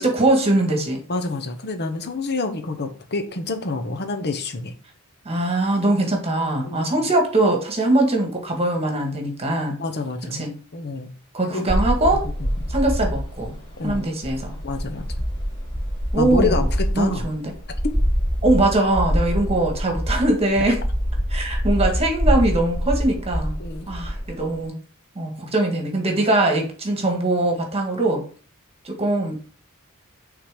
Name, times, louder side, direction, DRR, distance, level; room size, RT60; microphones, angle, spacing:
voice 1, 0.0-1.0 5.3-9.8 10.3-10.5 11.3-12.2 12.7-13.5 13.8-14.6 16.1-16.6 16.9-17.5 18.4-20.8 21.3-23.6 23.9-24.8 25.2-28.2 28.8-29.3, right 2 dB, 30° right, 2 dB, 1.7 m, -21 dB
voice 2, 1.1-4.7 6.6-7.1 9.8-10.4 10.7-11.1 11.5-11.8 12.1-12.5 13.8-14.1 14.6-15.1 16.2-16.6 16.9-17.3 23.6-23.9, left 3 dB, 50° left, 6 dB, 1.0 m, -28 dB
sound 1, 11.7-24.6, equal, 20° left, 3.0 m, -25 dB
6.0 x 3.9 x 5.0 m, 0.41 s
head